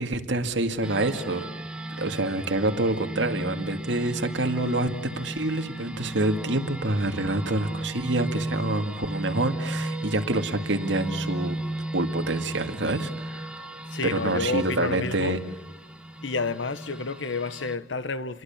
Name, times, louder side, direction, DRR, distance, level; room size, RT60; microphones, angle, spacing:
voice 1, 0.0-1.5 1.9-11.6 11.9-13.4 14.1-15.4, right 2 dB, 70° right, 2.2 m, -27 dB
sound 1, 0.8-17.8, right 1 dB, 5° right, 1.9 m, -35 dB
voice 2, 13.9-15.4 16.2-18.4, left 3 dB, 70° left, 1.1 m, -30 dB
29.5 x 23.0 x 7.3 m
head